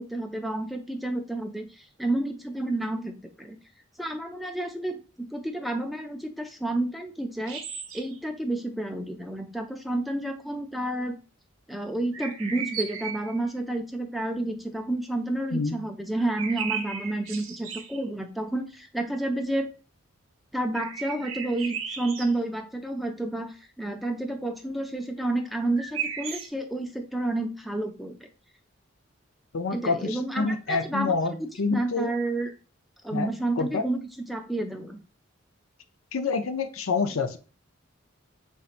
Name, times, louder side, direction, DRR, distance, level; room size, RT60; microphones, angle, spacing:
voice 1, 0.0-3.6 4.0-7.6 7.9-11.2 11.7-19.7 20.5-28.3 29.7-31.1 31.7-32.5 33.0-35.0, right 2 dB, ahead, 3 dB, 0.4 m, -30 dB
sound 1, 7.4-8.2 12.1-13.4 16.2-18.0 20.7-22.3 25.7-26.5, right 7 dB, 80° right, 0.8 m, -35 dB
voice 2, 29.5-32.1 33.1-33.3 33.6-33.9 36.1-37.4, left 4 dB, 85° left, 9 dB, 0.6 m, -27 dB
4.4 x 4.0 x 2.5 m, 0.35 s
head